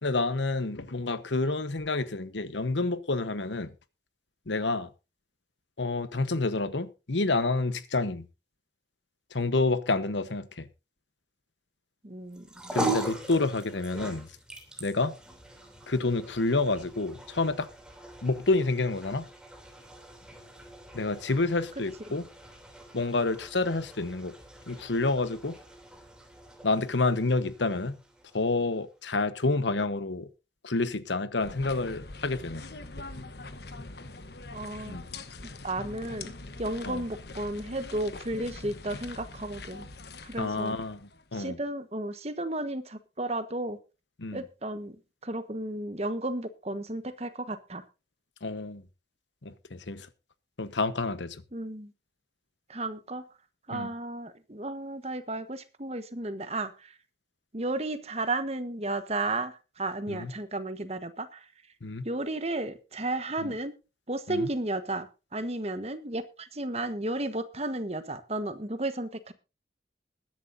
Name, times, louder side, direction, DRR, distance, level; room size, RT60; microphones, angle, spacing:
voice 1, 0.0-3.7 4.5-4.9 5.8-8.3 9.3-10.7 12.7-14.3 14.8-15.1 15.9-17.7 18.2-19.3 20.9-22.3 22.9-24.3 24.7-25.6 26.6-28.0 28.3-30.3 30.6-32.7 34.9-35.0 36.9-37.0 40.4-41.6 44.2-44.4 48.4-48.8 49.4-50.1 50.6-51.4 53.7-53.9 60.1-60.3 61.8-62.1 63.4-63.5 64.3-64.5, left 3 dB, 90° left, 1.2 m, -29 dB
voice 2, 12.0-12.8 34.5-35.0 35.6-39.9 40.2-40.8 41.3-43.8 44.3-45.0 45.2-47.8 51.5-51.9 52.7-53.2 53.7-57.0 57.5-61.5 62.0-63.7 64.1-69.3, right 2 dB, 35° right, 1.3 m, -33 dB
sound 1, 12.3-28.8, right 2 dB, 5° right, 3.0 m, -41 dB
sound 2, 31.4-41.3, left 3 dB, 65° left, 1.2 m, -43 dB
21.0 x 10.5 x 2.7 m
head